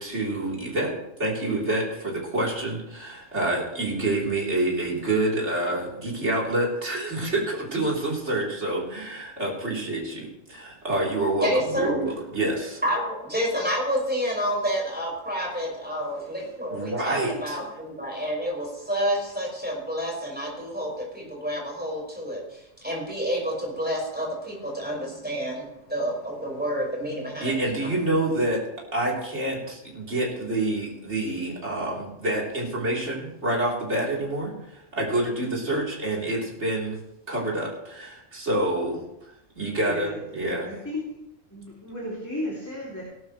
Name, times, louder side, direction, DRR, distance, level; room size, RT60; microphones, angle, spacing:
voice 1, 0.0-12.8 16.7-17.6 27.4-28.6 28.9-37.0 37.3-39.0 39.6-40.7, right 1 dB, 60° right, -4 dB, 4.1 m, -27 dB
voice 2, 11.4-12.0 12.8-27.7, equal, 5° right, -3 dB, 5.5 m, -29 dB
voice 3, 39.7-40.2 40.6-41.1 41.5-43.0, left 1 dB, 15° left, -5 dB, 3.0 m, -34 dB
18.0 x 12.0 x 3.3 m, 0.85 s
omnidirectional pair, 1.3 m